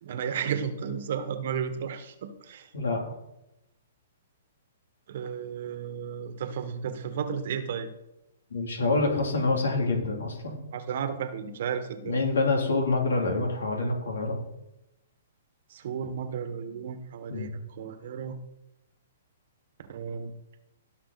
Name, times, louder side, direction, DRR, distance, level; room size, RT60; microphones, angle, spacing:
voice 1, 0.0-2.7 5.1-7.9 10.7-12.2 15.7-18.4 19.9-20.3, right 7 dB, 60° right, 9 dB, 1.4 m, -33 dB
voice 2, 8.5-10.5 12.0-14.4 17.3-17.5, left 3 dB, 80° left, 1 dB, 3.2 m, -26 dB
17.0 x 5.8 x 4.2 m, 0.90 s
hypercardioid pair, 130°, 0 cm